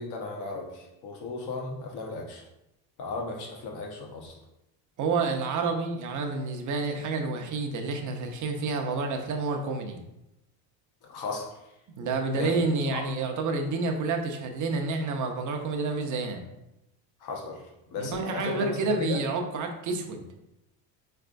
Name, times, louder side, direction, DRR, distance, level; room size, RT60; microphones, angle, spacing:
voice 1, 0.0-2.5 3.0-4.4 11.0-11.6 12.3-12.5 12.9-13.0 17.2-17.6 17.9-18.7 19.0-19.2, left 3 dB, 60° left, 1 dB, 1.0 m, -35 dB
voice 2, 5.0-10.0 12.0-16.4 18.0-20.2, right 3 dB, 40° right, 4 dB, 0.7 m, -29 dB
4.2 x 3.3 x 2.5 m, 0.90 s
cardioid pair, 110°, 45 cm